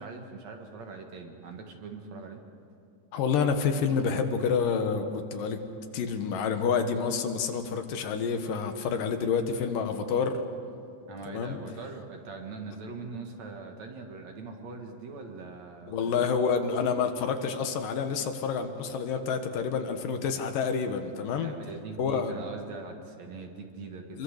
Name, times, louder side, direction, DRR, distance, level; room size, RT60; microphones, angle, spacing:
voice 1, 0.0-2.4 11.1-16.3 21.4-24.2, right 4 dB, 55° right, 3 dB, 2.7 m, -42 dB
voice 2, 3.1-5.6 5.9-10.4 11.3-11.6 15.9-21.5 22.0-22.3 24.1-24.2, left 6 dB, 75° left, 6 dB, 3.0 m, -28 dB
26.0 x 23.0 x 6.6 m, 2.4 s
omnidirectional pair, 4.0 m